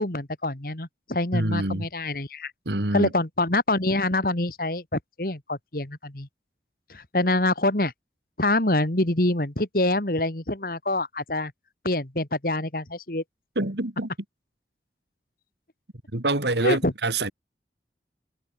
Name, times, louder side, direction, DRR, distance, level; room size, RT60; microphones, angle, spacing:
voice 1, 0.0-2.5 2.9-6.3 6.9-7.9 8.4-11.5 11.8-13.2 16.6-16.9, left 2 dB, 55° left, 2.5 m, -25 dB
voice 2, 1.3-1.9 2.7-3.1 13.6-14.1 16.1-17.3, right 2 dB, 75° right, 2.6 m, -26 dB
head